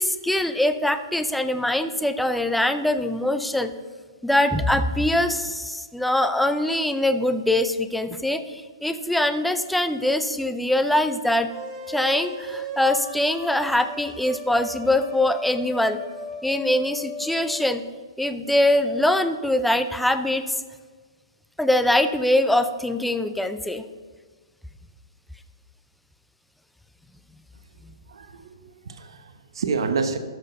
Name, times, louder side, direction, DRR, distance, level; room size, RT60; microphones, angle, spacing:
voice 1, 0.0-3.7 4.2-11.5 11.9-16.0 16.4-17.8 18.2-20.5 21.6-23.8, left 1 dB, ahead, 9 dB, 0.5 m, -23 dB
sound 1, 11.5-17.7, equal, 25° right, 1.7 m, -37 dB
voice 2, 28.1-30.2, right 5 dB, 75° right, 8 dB, 1.1 m, -28 dB
13.0 x 6.1 x 5.4 m, 1.5 s
hypercardioid pair, 150°, 3 cm